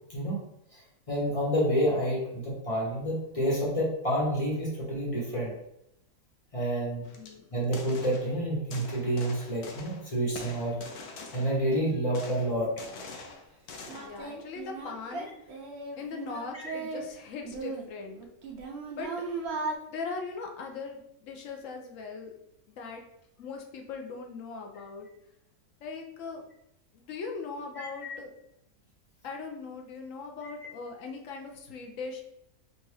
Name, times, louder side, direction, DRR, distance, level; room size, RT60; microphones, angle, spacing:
voice 1, 0.1-0.4 0.7-0.8 1.1-5.5 6.5-7.0 7.5-10.8 11.3-12.7 16.5-16.7 27.8-28.2 30.6-30.7, equal, 25° left, -5 dB, 1.2 m, -29 dB
sound 1, 7.0-7.3 7.6-8.3 8.7-10.1 10.4-11.7 12.1-14.2, left 3 dB, 85° left, 1.2 m, -44 dB
voice 2, 7.2-7.5 14.0-15.3 16.0-18.2 19.0-19.1 19.9-22.3 22.7-23.0 23.4-25.1 25.8-26.4 26.9-28.3 29.2-32.2, left 4 dB, 65° left, 2 dB, 1.0 m, -40 dB
Singing, 13.3-13.4 13.9-17.1 17.4-19.7, right 3 dB, 55° right, 0.8 m, -37 dB
5.2 x 2.5 x 3.3 m, 0.80 s
omnidirectional pair, 1.6 m